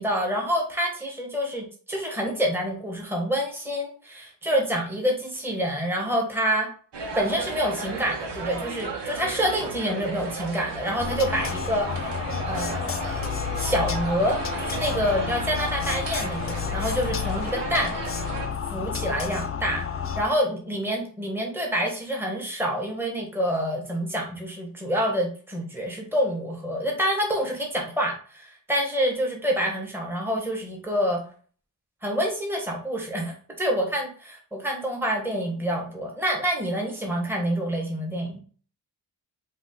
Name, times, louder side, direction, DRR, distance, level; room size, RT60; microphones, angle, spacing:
voice 1, 0.0-6.7 7.1-12.1 12.4-13.3 13.6-17.9 18.7-19.9 20.2-31.2 32.0-38.4, equal, 5° right, -1 dB, 1.4 m, -27 dB
sound 1, 6.9-18.5, right 4 dB, 75° right, 1.0 m, -35 dB
sound 2, 11.0-20.2, left 7 dB, 35° left, 0.5 m, -30 dB
5.0 x 2.5 x 3.8 m, 0.44 s
cardioid pair, 75°, 42 cm